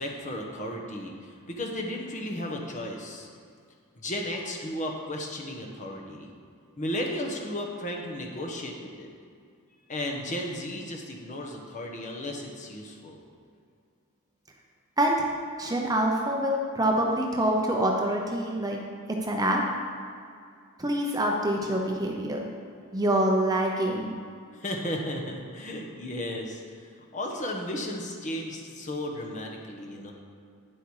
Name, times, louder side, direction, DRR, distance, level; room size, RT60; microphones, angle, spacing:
voice 1, 0.0-3.3 4.0-6.3 6.8-9.1 9.9-13.2 24.5-26.6 27.1-30.1, left 1 dB, 35° left, 0 dB, 1.2 m, -34 dB
voice 2, 15.0-15.3 15.6-19.6 20.8-22.5 22.9-24.2, right 1 dB, 15° right, 0 dB, 0.8 m, -26 dB
9.9 x 7.7 x 4.8 m, 2.3 s
head